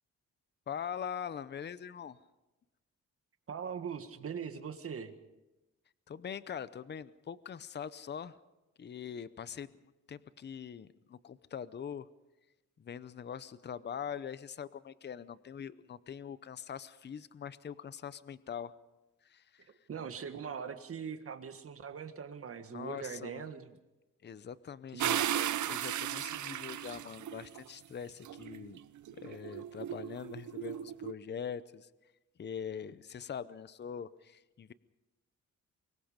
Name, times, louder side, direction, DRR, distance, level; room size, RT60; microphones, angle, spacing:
voice 1, 0.7-2.2 6.1-8.4 8.8-9.7 10.1-12.1 12.8-18.7 19.2-19.7 22.6-23.5 24.2-28.8 29.2-31.9 32.4-34.7, left 8 dB, 35° left, 16 dB, 0.7 m, -43 dB
voice 2, 3.5-5.1 19.9-23.7 24.9-25.1, right 6 dB, 50° right, 9 dB, 1.7 m, -41 dB
sound 1, 25.0-27.6 28.2-31.1, right 11 dB, 70° right, 0.7 m, -36 dB
24.5 x 21.5 x 5.1 m, 1.0 s
wide cardioid pair, 130°, 31 cm